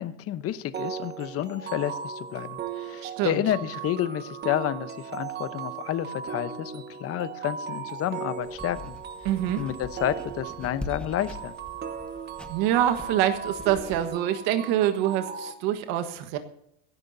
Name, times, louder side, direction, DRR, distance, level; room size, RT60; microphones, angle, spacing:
voice 1, 0.0-8.9 9.6-11.5, left 11 dB, 40° left, 12 dB, 0.9 m, -30 dB
sound 1, 0.7-15.5, right 7 dB, 25° right, 1.2 m, -37 dB
voice 2, 3.0-3.4 9.2-9.6 12.5-16.4, right 11 dB, 70° right, 7 dB, 1.5 m, -25 dB
sound 2, 8.4-14.1, left 1 dB, 5° left, 1.1 m, -43 dB
23.0 x 11.0 x 2.7 m, 0.77 s
supercardioid pair, 130°, 37 cm